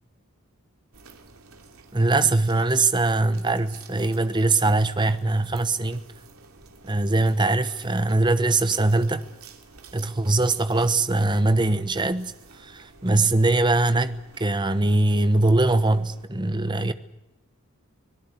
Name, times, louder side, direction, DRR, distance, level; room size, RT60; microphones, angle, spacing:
sound 1, 0.9-16.3, right 4 dB, 75° right, 2.9 m, -50 dB
voice 1, 1.9-6.0 6.8-9.2 9.9-16.9, right 2 dB, 20° right, 1.1 m, -22 dB
25.5 x 18.0 x 8.4 m
head